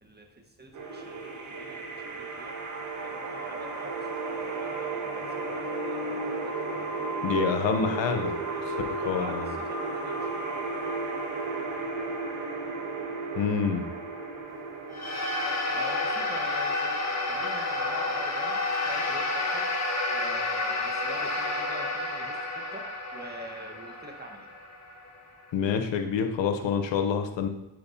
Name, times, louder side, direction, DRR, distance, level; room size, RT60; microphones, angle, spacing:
voice 1, 0.0-2.5 3.0-10.6 15.7-19.6 19.9-22.8 23.1-24.5, right 1 dB, 20° right, 2 dB, 1.2 m, -45 dB
sound 1, 0.7-19.7, right 3 dB, 35° right, 1.3 m, -34 dB
voice 2, 7.2-8.4 8.9-9.5 13.4-13.9 25.5-27.5, left 6 dB, 65° left, 7 dB, 0.8 m, -27 dB
sound 2, 14.9-25.5, left 2 dB, 35° left, 1.2 m, -30 dB
7.8 x 4.5 x 2.7 m, 0.97 s
supercardioid pair, 55°, 49 cm